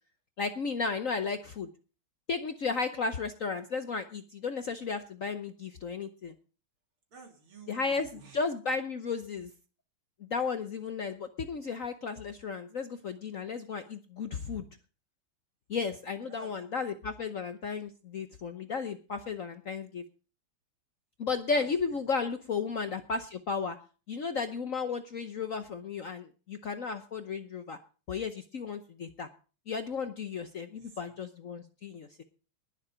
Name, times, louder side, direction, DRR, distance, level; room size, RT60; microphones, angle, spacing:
voice 1, 0.4-1.7 2.3-6.3 7.7-9.5 10.2-14.7 15.7-20.0 21.2-23.8 24.1-27.8 28.1-29.3 29.7-32.2, left 5 dB, 55° left, 8 dB, 0.9 m, -34 dB
voice 2, 7.1-8.4 16.3-16.5 21.5-22.0 30.8-31.1, right 5 dB, 80° right, 3 dB, 3.7 m, -50 dB
20.0 x 7.3 x 5.0 m, 0.36 s
omnidirectional pair, 2.3 m